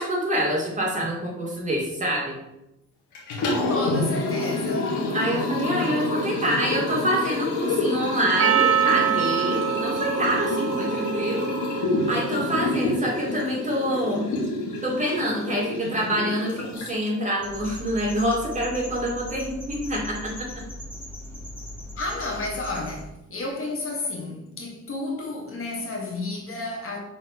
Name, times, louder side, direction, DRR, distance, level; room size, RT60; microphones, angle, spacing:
voice 1, 0.0-2.3 5.1-11.5 12.1-14.3 14.8-20.5, equal, 25° right, 2.4 m, -26 dB
Liquid, 3.1-17.2, left 2 dB, 75° left, 1.9 m, -28 dB
voice 2, 3.4-5.0 21.9-27.0, left 2 dB, 45° left, 1.6 m, -31 dB
Percussion, 8.4-12.7, right 10 dB, 55° right, 0.7 m, -25 dB
sound 1, 17.4-23.0, left 1 dB, 5° left, 2.3 m, -39 dB
6.3 x 4.0 x 4.3 m
cardioid pair, 90°, 30 cm